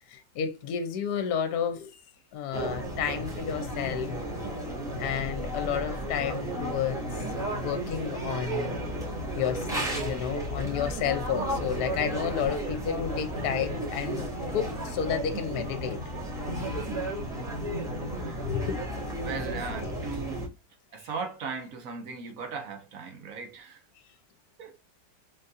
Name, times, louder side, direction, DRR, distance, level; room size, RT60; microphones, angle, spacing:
voice 1, 0.1-2.0 2.3-4.1 5.0-7.0 7.5-8.7 9.4-9.7 9.9-14.3 14.5-16.0 18.4-18.8 19.8-19.9, left 8 dB, 70° left, 1.1 m, -31 dB
sound 1, 2.5-20.5, right 1 dB, ahead, 2.3 m, -33 dB
voice 2, 18.1-18.5 19.2-20.5 20.9-23.8 24.6-24.8, right 5 dB, 60° right, 1.2 m, -38 dB
4.0 x 3.9 x 2.6 m
omnidirectional pair, 1.9 m